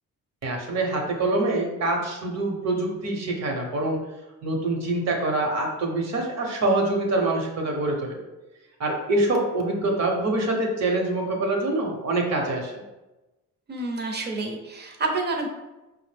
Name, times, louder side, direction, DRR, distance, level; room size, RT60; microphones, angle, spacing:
voice 1, 0.4-4.0 4.4-8.2 8.8-12.8, right 2 dB, 55° right, 1 dB, 1.0 m, -25 dB
voice 2, 13.7-15.5, right 3 dB, 30° right, 2 dB, 0.7 m, -28 dB
5.0 x 2.1 x 3.4 m, 1.1 s
cardioid pair, 105°, 32 cm